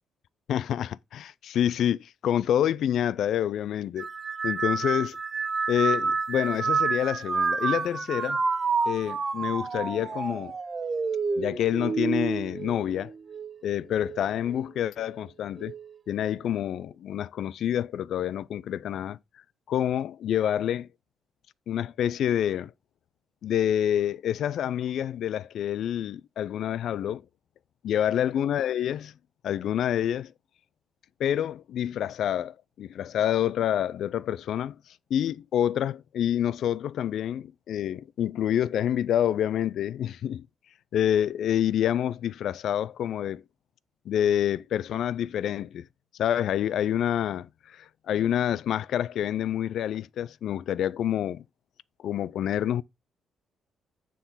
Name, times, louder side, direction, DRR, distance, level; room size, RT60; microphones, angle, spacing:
voice 1, 0.5-4.1 4.4-5.2 5.7-8.4 8.9-10.5 11.4-13.1 13.6-15.7 16.1-19.2 19.7-20.9 21.7-22.7 23.4-27.2 27.8-29.1 29.4-30.3 31.2-34.8 35.1-40.5 40.9-43.4 44.1-45.9 46.2-51.4 52.0-52.8, left 10 dB, 65° left, 0.3 m, -27 dB
sound 1, 4.0-13.6 14.0-14.6 15.6-15.9, right 4 dB, 25° right, 0.5 m, -29 dB
9.2 x 3.8 x 4.1 m
cardioid pair, 150°, 0 cm